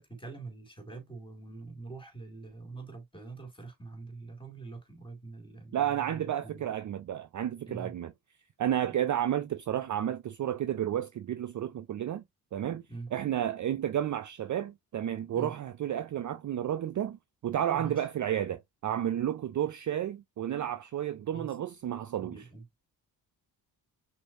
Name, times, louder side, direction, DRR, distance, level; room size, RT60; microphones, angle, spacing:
voice 1, 0.0-6.7 7.6-7.9 12.9-13.1 15.3-15.5 17.7-18.0 21.3-21.5 22.2-22.6, right 3 dB, 10° left, 2.4 m, -44 dB
voice 2, 5.7-8.1 8.6-12.2 12.5-12.8 13.1-22.5, right 10 dB, 40° right, 0.5 m, -31 dB
6.1 x 2.7 x 2.6 m
hypercardioid pair, 40°, 48 cm